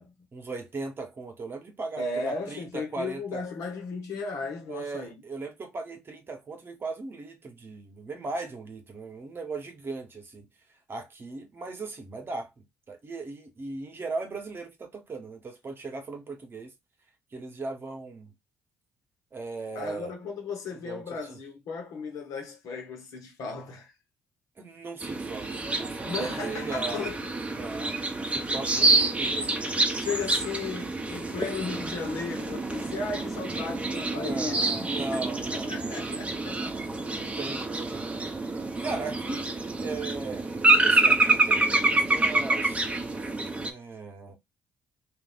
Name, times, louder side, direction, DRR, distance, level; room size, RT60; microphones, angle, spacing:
voice 1, 0.3-3.4 4.7-10.5 10.9-16.7 17.3-18.3 19.3-20.1 20.8-21.4 24.6-27.1 27.5-29.8 31.6-32.0 34.1-36.0 36.5-42.9 43.6-44.4, right 3 dB, 40° right, 1.1 m, -38 dB
voice 2, 2.0-5.2 19.7-23.9 26.0-27.3 29.9-35.3 35.5-36.7, left 4 dB, 65° left, 1.2 m, -35 dB
sound 1, 25.0-43.7, right 2 dB, 20° right, 0.9 m, -27 dB
2.6 x 2.6 x 3.8 m
hypercardioid pair, 50°, 6 cm